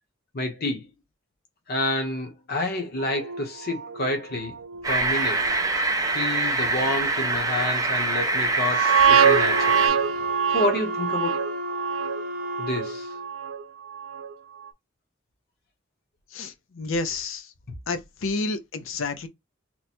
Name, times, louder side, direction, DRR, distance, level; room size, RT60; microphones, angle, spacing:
voice 1, 0.3-0.9 1.7-5.4 6.1-9.9 10.5-11.5 12.6-13.1, left 2 dB, 50° left, 1.0 m, -29 dB
sound 1, 3.0-4.2 4.6-4.9 5.4-5.6 6.1-6.3 6.9-7.0 8.6-14.3 14.6-14.7, right 8 dB, 80° right, 0.4 m, -25 dB
sound 2, 4.8-9.9, right 2 dB, 20° right, 0.5 m, -24 dB
Wind instrument woodwind instrument, 9.0-13.3, left 2 dB, 50° right, 0.7 m, -33 dB
voice 2, 16.3-17.5 17.9-19.3, left 3 dB, 85° left, 0.6 m, -30 dB
3.0 x 2.2 x 4.2 m
head